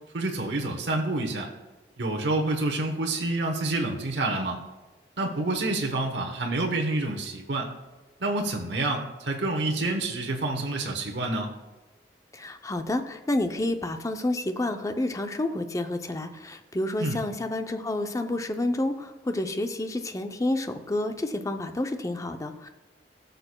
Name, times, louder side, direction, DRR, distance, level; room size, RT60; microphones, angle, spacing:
voice 1, 0.1-1.5 2.0-4.6 5.2-7.7 8.2-11.5 17.0-17.2, right 2 dB, 75° right, 1 dB, 1.0 m, -28 dB
voice 2, 12.3-22.7, left 1 dB, 20° left, 7 dB, 0.5 m, -29 dB
14.0 x 6.6 x 2.2 m, 1.2 s
head